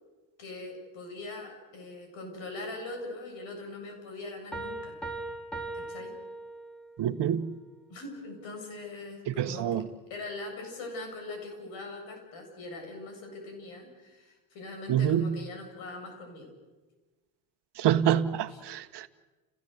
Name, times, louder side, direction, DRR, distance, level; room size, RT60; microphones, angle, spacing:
voice 1, 0.4-5.0 5.7-6.1 7.9-9.8 10.1-16.5 18.5-18.6, left 2 dB, 75° left, 7.9 m, -41 dB
Piano, 4.5-7.0, right 2 dB, ahead, 4.7 m, -39 dB
voice 2, 7.0-7.5 9.3-9.9 14.9-15.3 17.8-19.1, right 10 dB, 60° right, 1.4 m, -26 dB
29.5 x 17.0 x 8.1 m
supercardioid pair, 90°, 47 cm